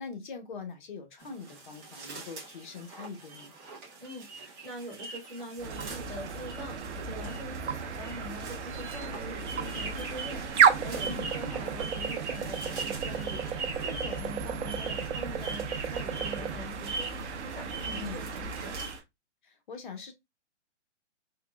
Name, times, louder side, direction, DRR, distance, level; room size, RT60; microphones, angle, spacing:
voice 1, 0.0-3.5 11.0-11.6 17.8-18.2 19.4-20.1, left 5 dB, 45° left, 0.9 m, -42 dB
sound 1, 1.2-19.0, right 3 dB, 20° right, 0.9 m, -42 dB
voice 2, 4.0-18.8, right 1 dB, 5° left, 0.5 m, -44 dB
sound 2, 5.6-19.0, right 6 dB, 70° right, 0.7 m, -32 dB
3.6 x 3.0 x 2.2 m
hypercardioid pair, 160°, 36 cm